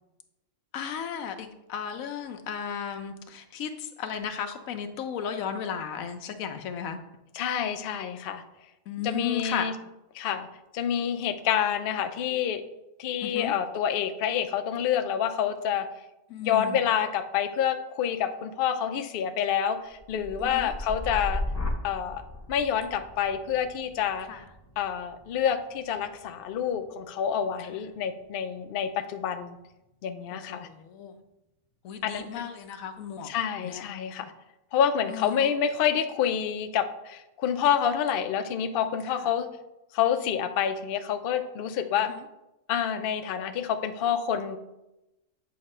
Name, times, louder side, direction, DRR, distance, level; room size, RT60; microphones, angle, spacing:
voice 1, 0.7-7.0 8.9-9.7 13.2-13.5 16.3-16.8 20.4-20.7 24.3-24.4 27.6-27.7 30.5-31.2 31.8-33.3 33.6-33.8 35.1-35.5 39.1-39.3 42.0-42.2, left 7 dB, 90° left, 7 dB, 1.1 m, -35 dB
voice 2, 7.3-8.4 9.0-9.7 10.1-10.5 10.7-12.6 13.0-15.9 16.4-21.4 21.8-22.2 22.5-24.3 24.8-29.6 30.0-30.7 32.0-32.4 33.2-34.3 34.7-39.5 39.9-42.1 42.7-44.6, left 8 dB, 65° left, 7 dB, 0.6 m, -28 dB
sound 1, 19.9-28.0 28.4-28.9, left 1 dB, 20° left, 0.5 m, -37 dB
7.7 x 2.9 x 5.4 m, 0.93 s
omnidirectional pair, 1.4 m